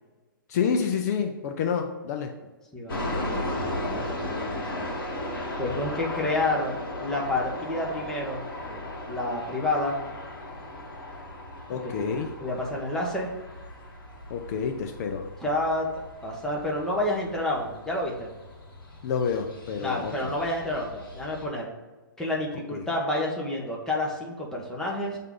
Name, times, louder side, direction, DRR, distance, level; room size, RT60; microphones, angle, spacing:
voice 1, 0.5-2.3 11.7-12.3 14.3-15.3 19.0-20.3 22.7-22.8, left 6 dB, 50° left, 5 dB, 0.6 m, -28 dB
voice 2, 2.7-3.6 3.9-4.8 5.6-10.0 11.7-12.1 12.4-13.3 15.4-15.9 16.2-18.3 19.8-21.7 22.2-25.2, left 1 dB, 5° left, -3 dB, 1.2 m, -29 dB
sound 1, 2.9-21.4, left 1 dB, 90° left, 2.0 m, -36 dB
7.8 x 3.7 x 3.8 m, 1.2 s
hypercardioid pair, 140°, 12 cm